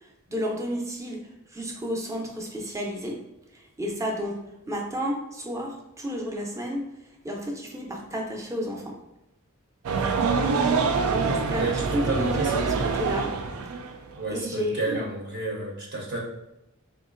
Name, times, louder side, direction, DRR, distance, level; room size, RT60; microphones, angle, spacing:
voice 1, 0.3-1.2 1.5-3.2 3.8-4.4 4.7-6.8 7.2-9.0 11.0-11.7 11.9-13.3 14.3-15.0, equal, 15° right, 0 dB, 0.6 m, -31 dB
sound 1, 9.8-14.3, right 4 dB, 85° right, 0.4 m, -25 dB
voice 2, 11.6-12.8 14.2-16.2, right 2 dB, 50° right, -2 dB, 0.7 m, -31 dB
3.8 x 2.6 x 2.5 m, 0.91 s
head